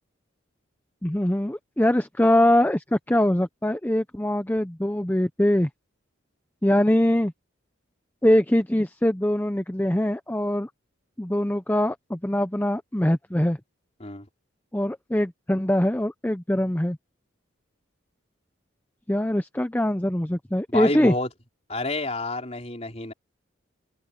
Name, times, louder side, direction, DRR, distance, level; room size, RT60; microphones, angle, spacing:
voice 1, 1.0-5.7 6.6-7.3 8.2-10.7 11.2-13.6 14.7-17.0 19.1-21.1, left 1 dB, 10° left, 0.6 m, -23 dB
voice 2, 20.7-21.3 21.7-23.1, left 2 dB, 30° left, 4.2 m, -29 dB
head